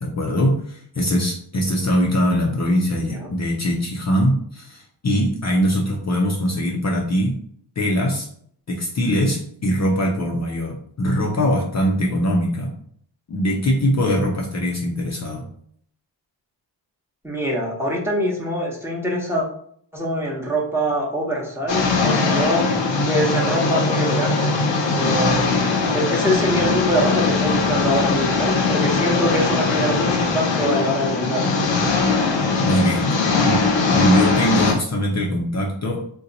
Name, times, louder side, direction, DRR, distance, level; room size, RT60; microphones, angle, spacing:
voice 1, 0.0-7.4 7.8-8.3 8.7-12.8 13.3-15.5 32.6-33.1 33.5-33.7 33.9-36.0, equal, 40° left, -1 dB, 0.6 m, -21 dB
voice 2, 17.2-19.5 19.9-24.6 24.9-31.7, equal, 5° right, -3 dB, 0.8 m, -24 dB
sound 1, 21.7-34.7, left 4 dB, 85° left, 0.8 m, -20 dB
2.8 x 2.2 x 3.8 m, 0.63 s
wide cardioid pair, 90°, 43 cm